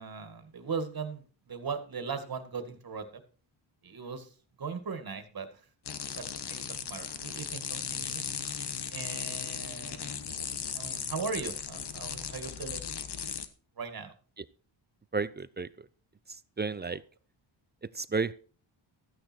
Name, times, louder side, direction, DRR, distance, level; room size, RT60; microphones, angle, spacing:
voice 1, 0.0-3.2 3.8-4.3 4.6-5.5 6.2-8.2 8.9-12.9 13.8-14.1 16.8-17.0, right 5 dB, 45° right, 9 dB, 2.0 m, -39 dB
sound 1, 5.9-13.5, left 7 dB, 55° left, 1.2 m, -37 dB
voice 2, 15.1-15.7 16.6-17.0 18.0-18.3, right 4 dB, 20° right, 16 dB, 0.5 m, -31 dB
14.0 x 9.2 x 4.5 m, 0.40 s
cardioid pair, 100°, 49 cm